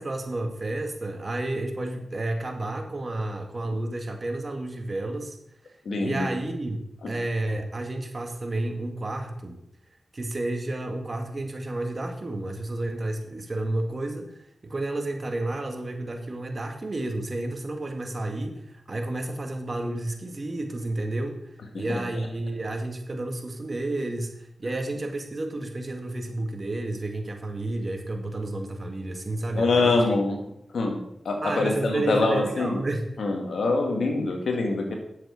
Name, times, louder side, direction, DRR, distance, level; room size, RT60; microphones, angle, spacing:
voice 1, 0.0-5.4 6.0-9.6 10.1-14.4 14.6-21.4 21.8-30.2 31.4-33.1, right 2 dB, 45° right, 4 dB, 2.1 m, -31 dB
voice 2, 5.9-6.3 7.0-7.1 21.9-22.0 29.5-30.4 30.7-32.8 33.2-35.0, left 3 dB, 85° left, 3 dB, 2.1 m, -24 dB
10.0 x 7.5 x 6.0 m, 0.76 s
cardioid pair, 55°, 0 cm